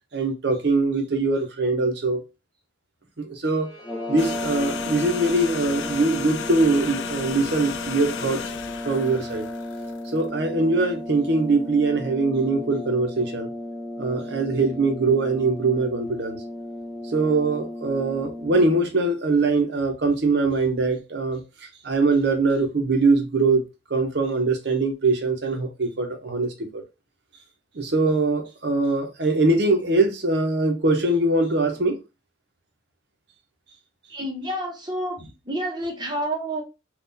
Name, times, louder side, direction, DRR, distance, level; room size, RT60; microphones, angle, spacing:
voice 1, 0.1-2.2 3.2-3.7 4.1-8.4 8.8-9.5 10.1-13.5 14.0-16.4 17.1-21.4 21.8-26.8 27.7-32.0, right 3 dB, 55° right, 0.7 m, -22 dB
Bowed string instrument, 3.5-7.8, right 2 dB, 20° left, 1.3 m, -48 dB
sound 1, 3.8-18.9, left 1 dB, 5° left, 0.5 m, -35 dB
sound 2, 4.2-10.5 10.8-10.9, left 7 dB, 70° left, 0.3 m, -35 dB
voice 2, 34.1-36.6, right 1 dB, 20° right, 0.9 m, -29 dB
3.7 x 2.4 x 2.6 m
head